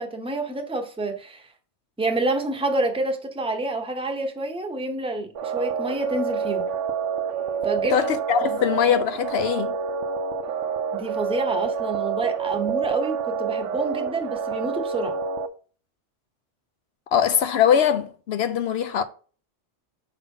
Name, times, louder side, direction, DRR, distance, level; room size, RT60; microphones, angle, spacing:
voice 1, 0.0-1.5 2.0-6.7 7.6-8.0 8.3-8.6 10.9-15.2, right 2 dB, 5° right, 0.8 m, -28 dB
sound 1, 5.3-15.5, right 6 dB, 85° right, 0.9 m, -28 dB
voice 2, 7.9-9.7 17.1-19.0, left 8 dB, 65° left, 0.8 m, -22 dB
5.5 x 4.1 x 5.4 m
omnidirectional pair, 1.2 m